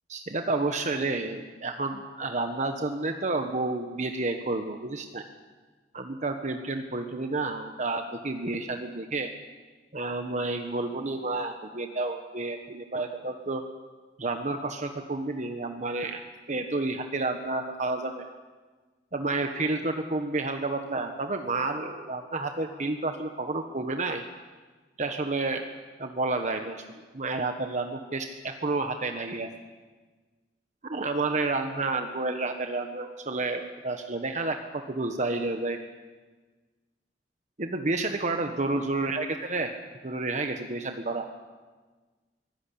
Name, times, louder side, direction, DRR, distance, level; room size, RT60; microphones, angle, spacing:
voice 1, 0.1-5.2 5.9-9.3 9.9-13.6 14.2-16.2 16.5-18.3 19.1-24.2 25.0-25.6 26.0-26.8 27.1-29.5 30.9-35.8 37.6-39.7 40.0-41.3, right 3 dB, 45° right, 6 dB, 1.3 m, -30 dB
23.5 x 17.0 x 8.6 m, 1.3 s
head